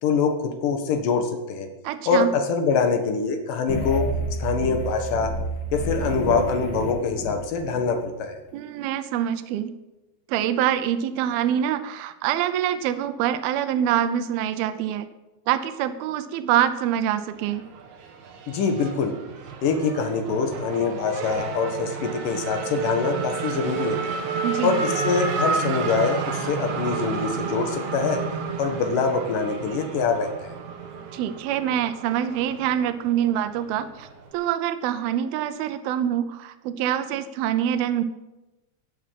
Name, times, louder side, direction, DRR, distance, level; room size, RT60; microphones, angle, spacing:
voice 1, 0.0-1.7 2.1-4.1 4.4-5.4 5.7-8.4 18.5-19.1 19.6-24.2 24.6-28.2 28.6-30.6, left 5 dB, 60° left, 5 dB, 2.5 m, -24 dB
voice 2, 1.8-2.3 8.5-9.8 10.3-15.1 15.5-17.6 24.4-24.8 31.1-38.0, right 10 dB, 90° right, 11 dB, 2.1 m, -25 dB
sound 1, 3.7-7.8, right 1 dB, 35° left, 2.0 m, -29 dB
Race car auto racing / Accelerating revving vroom, 17.3-34.3, right 5 dB, 60° right, 2.0 m, -31 dB
18.0 x 7.2 x 7.5 m, 1.0 s
omnidirectional pair, 5.4 m